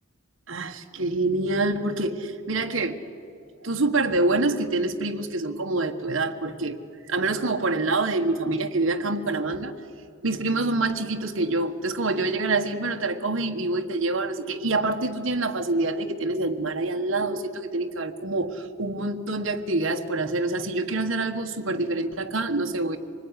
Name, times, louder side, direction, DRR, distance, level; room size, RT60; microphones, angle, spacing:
voice 1, 0.5-3.0 3.6-6.8 7.1-9.7 10.2-23.0, right 2 dB, 65° right, 4 dB, 1.5 m, -26 dB
25.5 x 20.0 x 9.9 m, 2.4 s
head